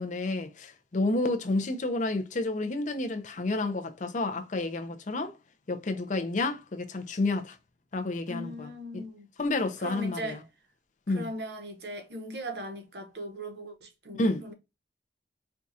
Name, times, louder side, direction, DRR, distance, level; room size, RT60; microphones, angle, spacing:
voice 1, 0.0-5.4 5.7-7.6 7.9-9.0 9.4-10.4 11.1-11.3 14.2-14.5, left 2 dB, 45° left, 0.6 m, -30 dB
voice 2, 8.3-9.3 9.8-10.4 11.1-14.5, equal, 65° right, 1.0 m, -39 dB
4.5 x 2.3 x 2.7 m
head